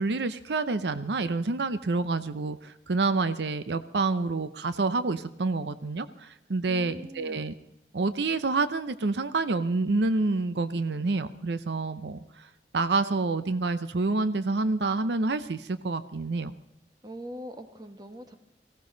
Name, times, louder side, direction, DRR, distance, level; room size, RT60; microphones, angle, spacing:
voice 1, 0.0-7.5 7.9-16.5, right 3 dB, 75° right, 13 dB, 0.7 m, -28 dB
voice 2, 6.7-7.5 17.0-18.4, equal, 25° right, 7 dB, 1.4 m, -42 dB
19.0 x 16.0 x 3.9 m, 0.83 s
head